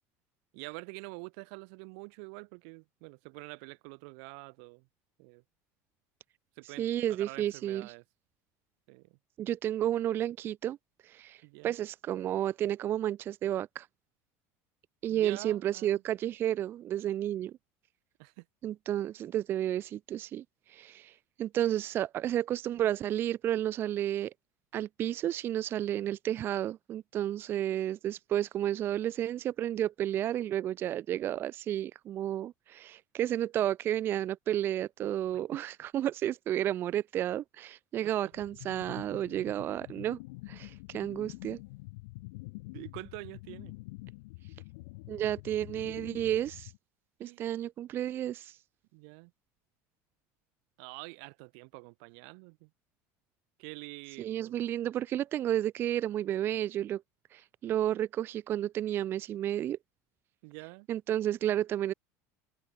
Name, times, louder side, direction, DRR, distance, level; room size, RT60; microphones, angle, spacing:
voice 1, 0.5-4.9 5.2-5.4 6.6-8.0 8.9-9.2 11.4-11.8 15.1-16.0 18.2-18.5 38.0-38.3 42.7-43.7 47.2-47.4 48.9-49.3 50.8-52.7 53.6-54.6 60.4-60.9, right 40 dB or more, 70° right, 0.7 m, -46 dB
voice 2, 6.8-7.9 9.4-10.8 11.0-13.9 15.0-17.6 18.6-24.3 24.7-40.2 40.5-41.6 45.1-46.7 47.2-48.6 54.2-57.0 57.3-59.8 60.9-61.9, right 11 dB, 30° right, 0.4 m, -32 dB
sound 1, 38.3-46.8, left 24 dB, 85° left, 0.6 m, -47 dB
cardioid pair, 155°, 7 cm